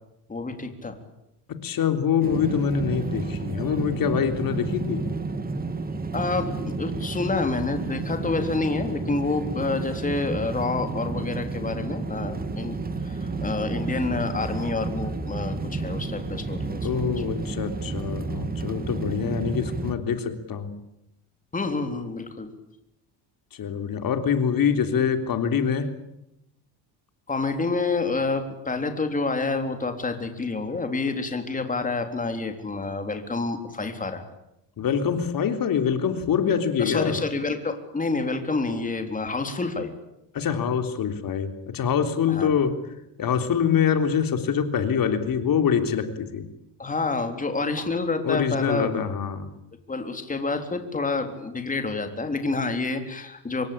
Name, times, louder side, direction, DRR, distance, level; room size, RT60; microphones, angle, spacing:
voice 1, 0.3-1.0 6.1-12.8 13.0-16.9 21.5-22.5 27.3-34.2 36.8-39.9 42.3-42.5 46.8-49.0 49.9-53.7, left 3 dB, 15° left, 6 dB, 3.7 m, -28 dB
voice 2, 1.6-5.1 16.8-20.7 23.5-25.9 34.8-37.2 40.3-42.8 43.2-46.5 48.2-49.5, left 7 dB, 45° left, 8 dB, 3.6 m, -25 dB
sound 1, 2.2-19.9, right 3 dB, 20° right, 2.2 m, -31 dB
26.5 x 23.0 x 8.7 m, 0.83 s
cardioid pair, 140°, 46 cm